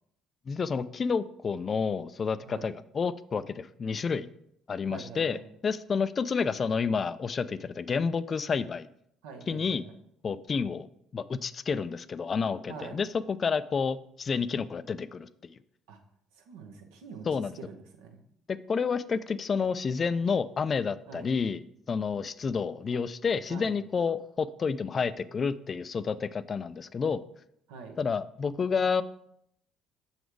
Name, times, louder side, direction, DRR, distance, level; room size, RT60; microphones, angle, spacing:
voice 1, 0.5-4.3 4.7-8.9 9.5-9.8 10.2-10.9 11.1-15.5 17.3-17.5 18.7-21.6 21.9-27.2 28.0-29.0, left 5 dB, 40° left, 15 dB, 0.4 m, -30 dB
voice 2, 4.9-5.4 9.2-10.0 12.7-13.0 15.9-16.0 16.3-17.3 17.6-18.2 21.1-21.3 23.5-23.7 27.7-28.0, right 5 dB, 75° right, 4 dB, 0.9 m, -45 dB
6.8 x 4.1 x 4.6 m, 0.72 s
hypercardioid pair, 55°, 0 cm